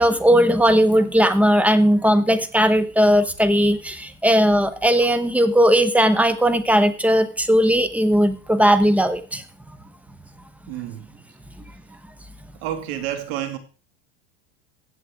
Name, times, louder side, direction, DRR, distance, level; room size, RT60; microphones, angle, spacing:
voice 1, 0.0-9.4, equal, 5° right, 0.9 m, -17 dB
voice 2, 10.7-11.1 12.6-13.6, right 11 dB, 70° right, 2.2 m, -29 dB
15.5 x 7.5 x 3.6 m
supercardioid pair, 125°, 33 cm